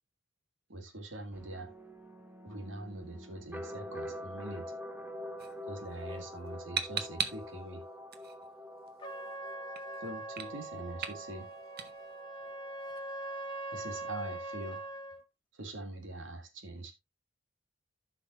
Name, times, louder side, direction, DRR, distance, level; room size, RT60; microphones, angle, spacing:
voice 1, 0.7-1.7 2.4-4.7 5.7-7.8 10.0-11.5 13.7-14.9 15.5-16.9, right 2 dB, 75° right, 2.1 m, -43 dB
sound 1, 1.3-14.9, left 1 dB, 10° right, 0.9 m, -47 dB
sound 2, 5.4-15.2, right 7 dB, 55° right, 1.1 m, -43 dB
Trumpet, 9.0-15.2, right 2 dB, 25° left, 1.3 m, -42 dB
14.5 x 5.8 x 2.5 m
head